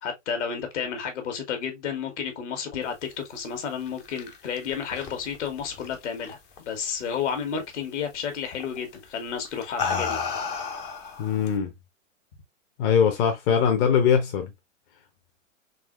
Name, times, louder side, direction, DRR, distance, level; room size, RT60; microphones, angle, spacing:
voice 1, 0.0-6.4 6.6-10.2, left 7 dB, 60° left, 1.5 m, -31 dB
sound 1, 3.7-6.6 6.9-7.4 8.6-8.8 9.4-11.6, left 5 dB, 20° left, 0.5 m, -32 dB
voice 2, 11.2-11.7 12.8-14.5, left 7 dB, 40° left, 0.9 m, -21 dB
4.0 x 2.9 x 2.4 m
hypercardioid pair, 110°, 39 cm